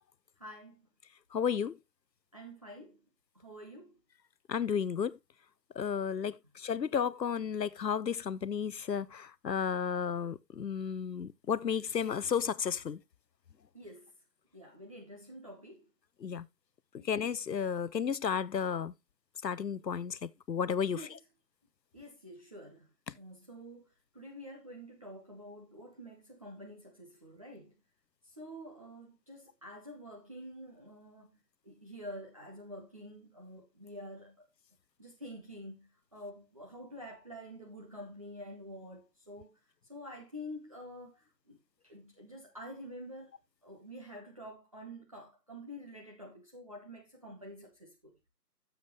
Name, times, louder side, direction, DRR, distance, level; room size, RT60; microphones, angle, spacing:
voice 1, 0.4-0.8 2.3-3.0 3.3-4.0 13.7-14.1 14.5-15.9 17.0-17.1 20.9-21.1 21.9-23.9 24.1-27.7 28.4-31.4 31.6-34.5 35.0-39.5 39.9-41.2 41.5-41.6 41.8-43.3 43.6-48.1, equal, 20° right, 1.1 m, -48 dB
voice 2, 1.3-1.8 4.5-5.2 5.8-13.0 16.2-16.5 17.0-18.9 19.4-21.1 23.1-23.2, left 7 dB, 85° left, 0.8 m, -33 dB
11.0 x 7.3 x 3.0 m
figure-of-eight pair, 165°, 49 cm